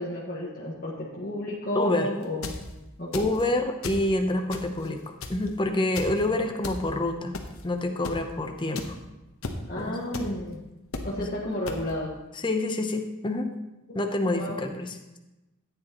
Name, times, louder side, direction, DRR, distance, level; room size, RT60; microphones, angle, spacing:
voice 1, 0.0-2.6 3.0-3.3 6.0-6.3 9.7-10.6 11.0-12.1 14.3-14.6, left 1 dB, 40° left, -7 dB, 1.6 m, -32 dB
voice 2, 1.7-2.1 3.1-7.4 7.6-9.0 9.8-10.0 11.2-11.3 12.4-13.5 13.9-15.2, left 2 dB, 20° left, 4 dB, 0.8 m, -27 dB
sound 1, 2.2-2.6 3.1-3.5 3.8-4.1 4.5-4.9 5.2-5.5 6.0-6.1 6.6-6.8 7.3-7.6 8.0-8.2 8.8-8.9 9.4-9.6 10.1-10.2 10.9-11.1 11.7-11.8, left 3 dB, 70° left, 1.1 m, -34 dB
14.0 x 8.9 x 3.0 m, 1.0 s
head